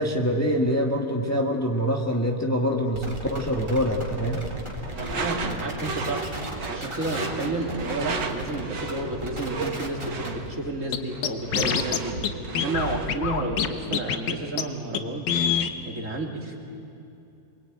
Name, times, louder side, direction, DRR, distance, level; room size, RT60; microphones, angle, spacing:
voice 1, 0.0-4.4, equal, 10° left, 1 dB, 1.7 m, -25 dB
sound 1, 2.9-10.5, right 1 dB, 15° right, 3.2 m, -36 dB
voice 2, 4.9-6.3 6.7-12.2 12.6-15.3 15.8-16.6, right 2 dB, 45° right, 1 dB, 3.2 m, -31 dB
Door / Screech, 4.9-13.2, right 3 dB, 75° right, 2.5 m, -34 dB
Scratching (performance technique), 10.9-11.0 11.2-12.0 12.2-12.3 12.6-13.7 13.9-14.3 14.6-14.7 14.9-15.0 15.3-15.7, left 8 dB, 75° left, 1.8 m, -24 dB
27.0 x 22.5 x 9.3 m, 2.8 s
omnidirectional pair, 1.9 m